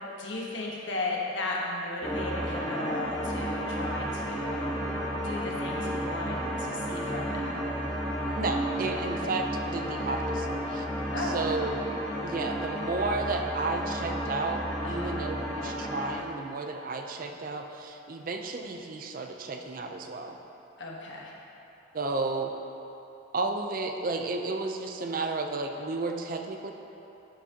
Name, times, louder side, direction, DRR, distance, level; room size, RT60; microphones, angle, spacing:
voice 1, 0.2-4.7 5.2-7.6 10.0-10.2 11.1-11.3 14.8-15.1 20.8-21.3, left 2 dB, 80° left, -2 dB, 1.2 m, -35 dB
sound 1, 2.0-16.2, equal, 15° left, 1.5 m, -32 dB
voice 2, 8.4-10.9 11.1-11.7 12.2-20.4 21.9-22.5 23.3-26.7, right 3 dB, 50° right, 4 dB, 0.5 m, -32 dB
11.5 x 6.0 x 2.8 m, 3.0 s
head